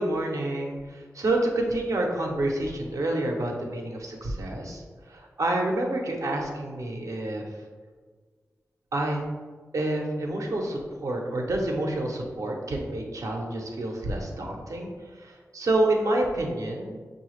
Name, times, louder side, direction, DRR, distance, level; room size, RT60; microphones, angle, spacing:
voice 1, 0.0-7.5 8.9-9.2 9.7-17.0, right 1 dB, 70° right, 1 dB, 0.7 m, -28 dB
5.5 x 2.3 x 3.1 m, 1.5 s
wide cardioid pair, 75°, 6 cm